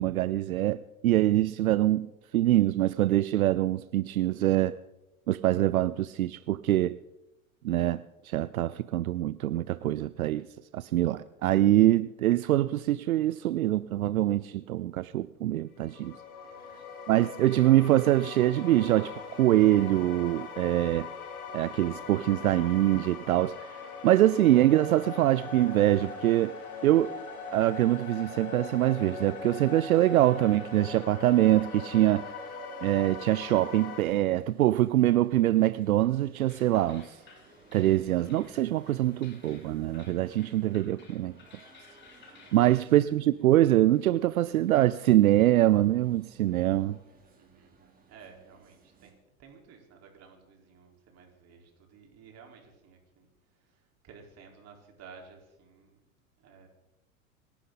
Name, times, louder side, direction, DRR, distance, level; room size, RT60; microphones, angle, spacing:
voice 1, 0.0-2.1 2.3-4.8 5.3-7.0 7.6-10.5 10.7-16.1 17.1-21.1 21.5-27.2 27.5-32.3 32.8-37.2 37.7-41.3 42.5-47.0, right 14 dB, 80° right, 0.6 m, -24 dB
sound 1, 15.8-34.0, left 4 dB, 80° left, 4.1 m, -41 dB
voice 2, 16.4-16.9 42.4-42.8 47.3-47.8 48.1-49.1 49.4-53.3 53.6-56.0 56.4-56.7, right 5 dB, 35° right, 4.3 m, -54 dB
sound 2, 34.0-49.1, right 4 dB, 20° right, 3.3 m, -59 dB
sound 3, 36.5-43.0, left 4 dB, 25° left, 4.9 m, -56 dB
27.0 x 12.0 x 4.0 m
hypercardioid pair, 100°, 42 cm